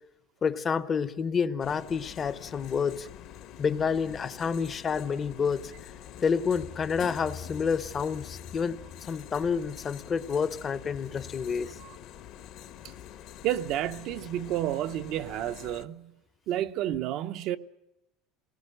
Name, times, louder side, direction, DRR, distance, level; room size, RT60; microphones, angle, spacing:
voice 1, 0.4-3.1 3.6-5.9 6.2-11.8, left 6 dB, 25° left, 0.8 m, -29 dB
sound 1, 1.6-15.9, left 11 dB, 55° left, 1.3 m, -46 dB
voice 2, 13.4-16.1 16.5-17.6, right 12 dB, 55° right, 0.8 m, -30 dB
28.5 x 19.0 x 6.6 m
cardioid pair, 145°, 0 cm